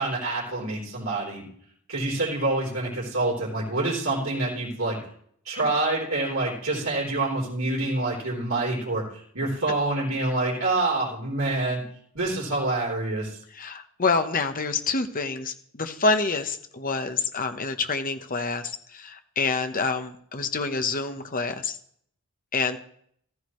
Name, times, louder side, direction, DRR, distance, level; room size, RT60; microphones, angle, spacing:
voice 1, 0.0-1.4 1.9-5.0 5.5-11.8 12.1-13.4, right 2 dB, 70° right, -5 dB, 3.8 m, -27 dB
voice 2, 13.5-21.8 22.5-22.8, left 4 dB, 40° left, 8 dB, 1.0 m, -27 dB
15.0 x 14.0 x 3.2 m, 0.64 s
head